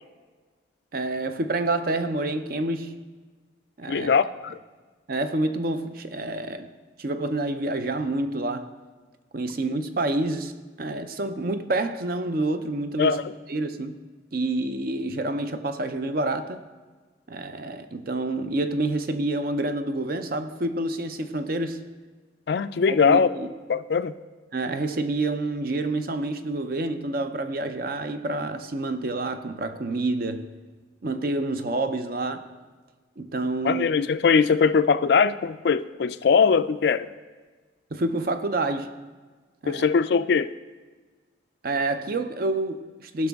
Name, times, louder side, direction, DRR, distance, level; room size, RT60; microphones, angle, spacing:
voice 1, 0.9-3.0 3.8-4.2 5.1-6.7 7.0-8.7 9.3-10.5 10.8-13.2 13.5-14.0 14.3-16.6 17.3-21.9 22.9-23.5 24.5-30.5 31.0-32.5 33.2-33.9 37.9-38.9 39.6-39.8 41.6-43.3, right 2 dB, 50° right, 0.5 m, -28 dB
voice 2, 3.9-4.6 13.0-13.3 22.5-23.3 23.7-24.1 33.6-37.1 39.7-40.5, left 5 dB, 55° left, 0.3 m, -21 dB
15.0 x 5.9 x 3.5 m
head